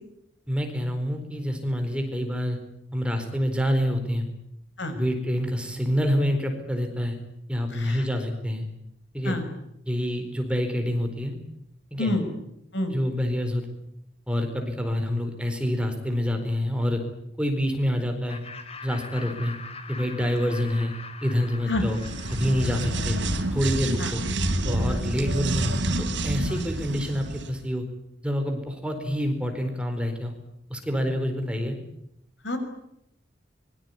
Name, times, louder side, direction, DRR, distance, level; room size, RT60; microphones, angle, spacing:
voice 1, 0.5-2.6 2.9-4.3 4.9-7.2 7.5-8.6 9.1-9.4 9.9-11.3 11.9-12.2 12.9-13.7 14.3-17.0 17.4-18.4 18.8-19.5 19.9-20.9 21.2-22.0 22.3-23.2 23.5-24.2 24.6-25.7 26.2-27.8 28.2-30.3 30.7-31.8, equal, 5° right, 5 dB, 4.4 m, -27 dB
voice 2, 7.7-8.0 9.2-9.5 12.0-12.2 12.7-12.9 21.7-21.8 22.8-22.9 24.0-24.1 24.9-25.0 26.5-26.7 32.4-32.6, left 1 dB, 75° left, 8 dB, 6.0 m, -28 dB
Laughter, 18.3-23.6, left 4 dB, 35° left, 3.5 m, -43 dB
sound 1, 21.8-27.5, right 1 dB, 85° right, 3.7 m, -28 dB
25.0 x 23.5 x 9.7 m, 0.80 s
head